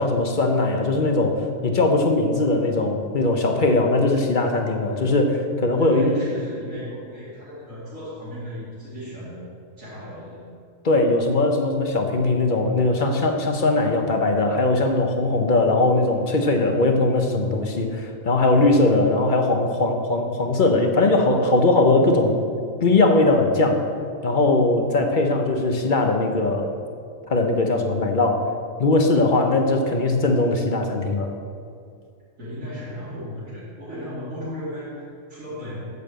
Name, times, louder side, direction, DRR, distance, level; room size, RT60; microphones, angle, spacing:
voice 1, 0.0-6.0 10.8-22.3 22.8-23.8 24.2-26.7 27.3-28.5 28.8-31.3, left 2 dB, 45° left, 4 dB, 0.8 m, -20 dB
voice 2, 5.8-9.4 9.8-10.4 32.4-35.8, equal, 80° right, -12 dB, 3.1 m, -35 dB
6.9 x 6.8 x 7.7 m, 2.3 s
omnidirectional pair, 1.4 m